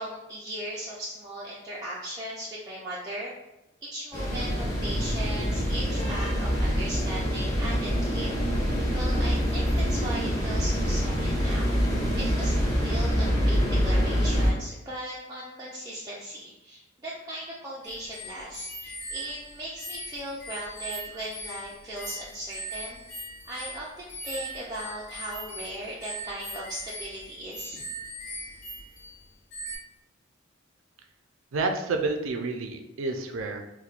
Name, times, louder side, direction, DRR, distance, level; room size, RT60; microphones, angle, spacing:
voice 1, 0.0-3.3 3.8-8.3 8.9-11.8 12.2-23.0 23.5-27.8, right 1 dB, 20° right, -7 dB, 0.4 m, -38 dB
sound 1, 4.1-14.5, equal, 20° left, 0.9 m, -25 dB
sound 2, 17.8-29.2 29.5-29.8, right 1 dB, 60° left, 0.8 m, -40 dB
voice 2, 31.5-33.6, right 3 dB, 90° right, 5 dB, 0.4 m, -29 dB
4.3 x 2.1 x 2.4 m, 0.95 s
head